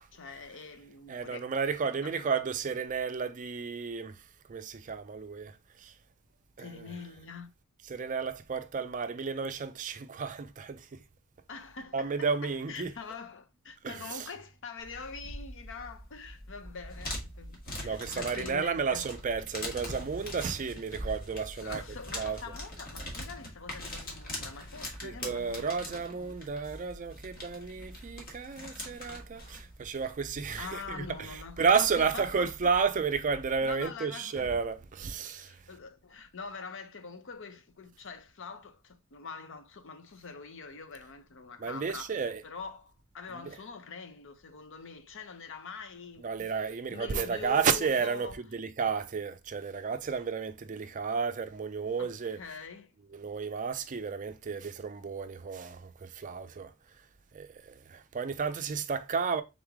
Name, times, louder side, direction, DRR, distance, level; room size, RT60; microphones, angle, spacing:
voice 1, 0.1-1.5 2.0-2.3 6.6-7.5 11.5-19.1 21.6-26.3 30.6-32.7 33.6-34.5 35.4-46.5 46.9-48.4 52.0-52.9, left 5 dB, 60° left, 0.7 m, -44 dB
voice 2, 1.1-4.2 4.5-5.9 6.6-6.9 7.9-11.0 11.9-12.9 13.8-14.3 17.8-21.8 22.1-22.4 25.0-35.6 41.6-42.4 43.4-43.5 46.2-52.4 53.1-56.7 57.3-59.4, right 5 dB, 35° right, 0.4 m, -32 dB
sound 1, 14.8-33.8, left 1 dB, 40° left, 1.4 m, -43 dB
3.9 x 3.2 x 3.5 m
head